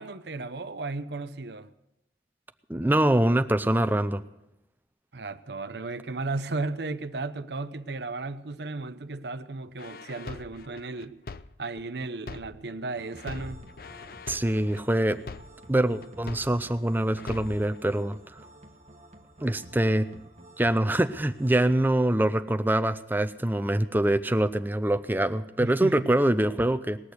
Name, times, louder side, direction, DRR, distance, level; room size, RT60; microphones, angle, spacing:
voice 1, 0.0-1.7 5.1-11.2 11.6-13.6 25.6-26.1, right 3 dB, 65° right, 0.8 m, -35 dB
voice 2, 2.7-4.2 14.3-15.2 15.7-18.2 19.4-20.1 20.6-27.0, right 1 dB, 10° right, 0.5 m, -24 dB
sound 1, 9.8-12.8 13.2-16.8 17.2-17.8, left 4 dB, 50° left, 0.5 m, -42 dB
sound 2, 12.9-21.7, right 1 dB, 40° right, 1.3 m, -51 dB
20.0 x 6.7 x 9.5 m
head